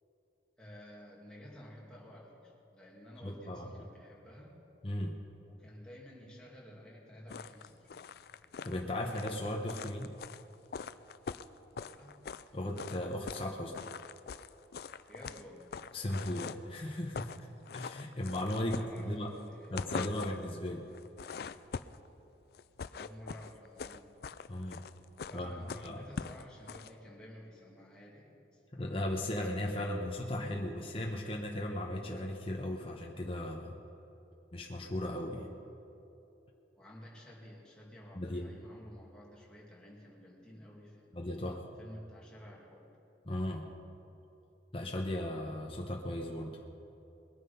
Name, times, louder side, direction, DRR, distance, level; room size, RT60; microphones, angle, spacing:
voice 1, 0.6-4.6 5.4-8.0 11.7-12.2 15.1-15.7 18.6-19.8 22.9-24.1 25.2-28.6 36.7-41.2 41.8-42.9, equal, 5° left, -5 dB, 2.6 m, -52 dB
voice 2, 3.2-3.8 4.8-5.2 8.6-10.1 12.5-13.8 15.9-17.3 17.7-19.3 19.7-20.9 24.5-24.8 25.3-26.0 28.7-33.7 34.5-35.5 38.1-38.5 41.1-41.7 43.2-43.7 44.7-46.6, left 1 dB, 30° left, 0 dB, 1.0 m, -37 dB
sound 1, 7.3-12.5 12.8-13.5 13.7-16.7 17.0-17.4 17.7-19.3 19.6-20.5 20.9-22.1 22.5-26.9, left 5 dB, 55° left, 0.4 m, -43 dB
21.0 x 9.0 x 5.6 m, 3.0 s
head